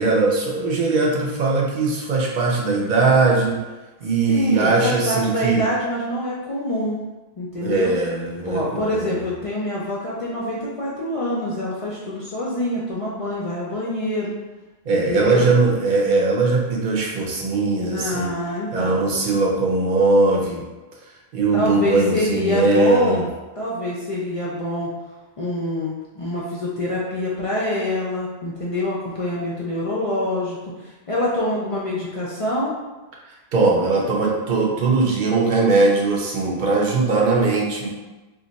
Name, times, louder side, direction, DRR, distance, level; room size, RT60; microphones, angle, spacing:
voice 1, 0.0-3.6 4.0-5.6 7.6-9.2 14.9-18.3 18.7-20.6 21.3-23.2 33.5-37.9, right 3 dB, 55° right, -2 dB, 0.7 m, -20 dB
voice 2, 4.3-7.0 7.4-7.9 8.4-14.3 14.9-15.5 17.9-19.0 21.5-23.2 23.6-24.9 25.4-32.7, left 1 dB, 50° left, -5 dB, 0.4 m, -26 dB
2.4 x 2.2 x 3.9 m, 1.2 s
omnidirectional pair, 1.1 m